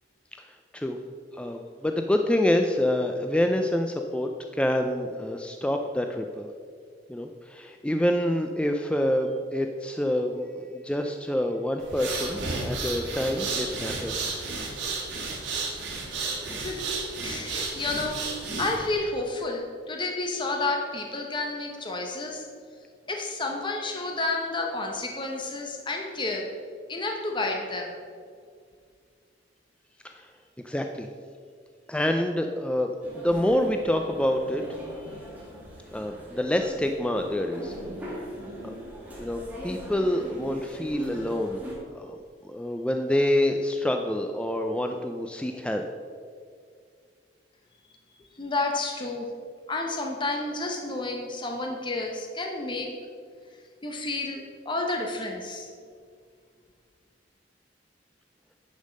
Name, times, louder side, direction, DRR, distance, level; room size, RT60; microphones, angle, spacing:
voice 1, 0.4-1.0 1.3-6.5 7.1-14.4 30.0-30.3 30.6-31.1 31.9-34.6 35.9-37.8 38.6-38.7 39.2-41.6 41.9-42.2 42.4-45.8, left 1 dB, 5° left, 4 dB, 0.4 m, -27 dB
sound 1, 11.8-18.9, right 3 dB, 90° right, 2.2 m, -32 dB
voice 2, 16.6-16.9 17.2-22.5 23.1-26.5 26.9-27.9 48.4-49.3 49.7-52.9 53.8-55.7, left 2 dB, 25° left, 1 dB, 0.9 m, -30 dB
sound 2, 33.0-41.7, equal, 10° right, 2.1 m, -40 dB
10.5 x 5.4 x 6.4 m, 2.1 s
head